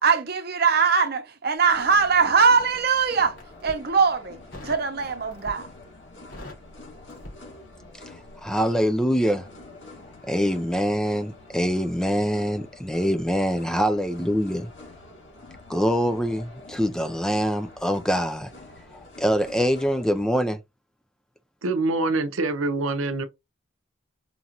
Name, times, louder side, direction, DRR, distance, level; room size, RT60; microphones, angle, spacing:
voice 1, 0.0-3.4 3.6-4.4 4.6-5.7, right 5 dB, 50° right, 0.8 m, -21 dB
Crackle, 1.6-2.7 3.2-3.8 4.5-4.9 5.3-5.8 6.1-8.0 8.2-8.5, left 1 dB, 90° left, 2.7 m, -43 dB
sound 1, 1.6-20.2, left 2 dB, 70° left, 2.7 m, -47 dB
voice 2, 8.4-9.5 10.2-14.7 15.7-18.5 19.2-20.6, equal, 5° left, 0.3 m, -24 dB
voice 3, 21.6-23.2, right 3 dB, 85° right, 0.7 m, -25 dB
5.2 x 2.5 x 2.8 m
head